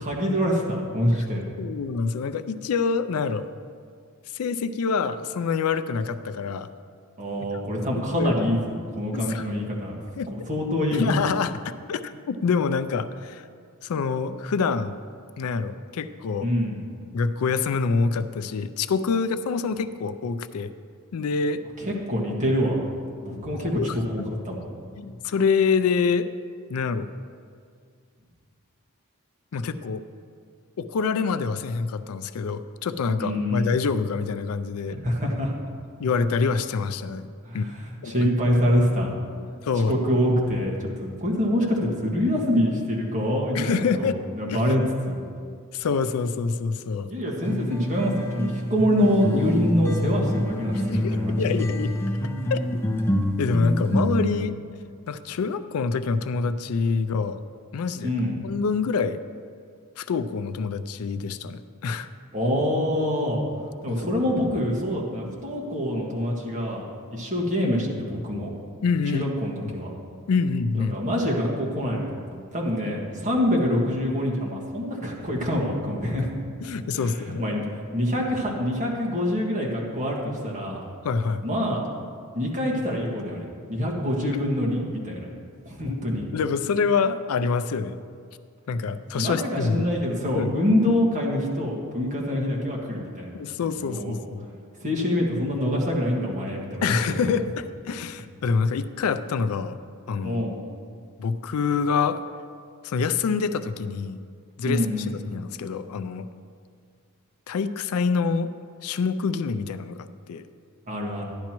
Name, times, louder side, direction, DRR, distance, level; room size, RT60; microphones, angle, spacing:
voice 1, 0.0-1.4 7.2-10.0 10.3-11.1 16.4-16.8 21.8-22.9 23.2-24.7 33.2-33.7 34.9-35.5 37.4-39.1 39.9-45.2 47.1-51.6 58.0-58.4 62.3-63.4 63.8-66.8 67.1-68.5 69.1-69.9 70.7-72.2 72.5-76.3 76.9-80.8 81.4-81.8 82.3-85.3 85.6-86.2 89.1-93.3 93.8-94.2 94.8-97.2 100.2-100.6 104.6-105.1 110.9-111.2, equal, 35° right, -2 dB, 1.6 m, -25 dB
voice 2, 1.6-3.5 4.3-6.7 8.0-8.3 9.1-9.4 10.2-10.3 10.9-13.4 13.8-14.9 15.4-16.5 17.1-20.7 21.1-21.6 23.7-24.3 25.0-26.3 26.7-27.1 29.5-30.0 30.8-35.0 36.0-37.3 37.5-37.7 38.0-38.3 39.6-40.1 43.5-44.2 44.5-44.7 45.7-47.1 50.9-51.9 52.5-52.8 53.2-54.5 55.1-57.4 57.7-58.1 58.4-59.2 60.0-62.1 63.9-64.0 68.8-69.3 69.6-69.8 70.3-71.0 76.2-76.3 76.6-77.5 81.0-81.4 86.3-87.9 88.7-89.9 90.3-90.6 93.3-94.5 96.8-99.8 100.1-100.5 101.2-102.2 102.8-104.2 104.6-104.9 105.2-106.3 107.5-108.5 108.8-110.4, left 5 dB, 75° left, 12 dB, 0.4 m, -26 dB
sound 1, 47.4-54.3, left 1 dB, 10° left, 0.6 m, -26 dB
11.5 x 10.5 x 3.0 m, 2.2 s
head